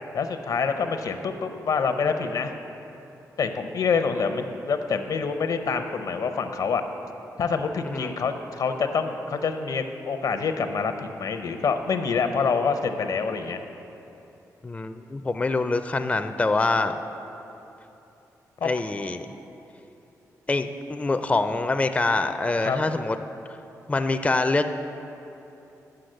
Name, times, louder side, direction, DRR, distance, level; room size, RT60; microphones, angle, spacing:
voice 1, 0.1-2.5 3.4-6.8 7.4-13.6 18.6-18.7 22.6-22.8, left 5 dB, 65° left, 7 dB, 0.6 m, -26 dB
voice 2, 14.6-16.9 18.6-19.3 20.5-23.2 23.9-24.7, left 3 dB, 20° left, 9 dB, 0.4 m, -25 dB
7.8 x 5.7 x 6.5 m, 2.9 s
cardioid pair, 60°, 7 cm